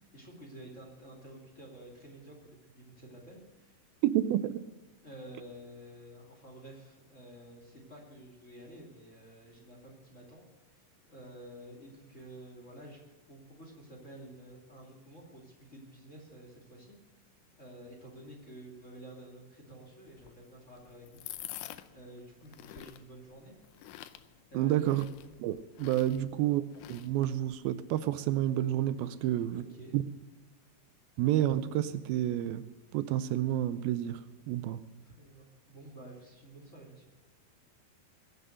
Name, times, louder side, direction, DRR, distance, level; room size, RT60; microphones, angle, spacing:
voice 1, 0.1-3.8 5.0-10.4 10.7-13.0 13.3-17.0 17.6-21.2 21.9-23.5 24.5-25.0 29.2-29.9 35.0-37.0, right 1 dB, 20° left, 2.4 m, -50 dB
voice 2, 4.0-4.6 24.5-25.1 25.4-26.6 26.9-29.6 29.9-30.0 31.2-32.6 32.9-34.8, right 13 dB, 80° right, 2.4 m, -29 dB
sound 1, 20.1-27.6, left 14 dB, 90° left, 1.8 m, -49 dB
21.5 x 8.0 x 6.4 m
omnidirectional pair, 4.3 m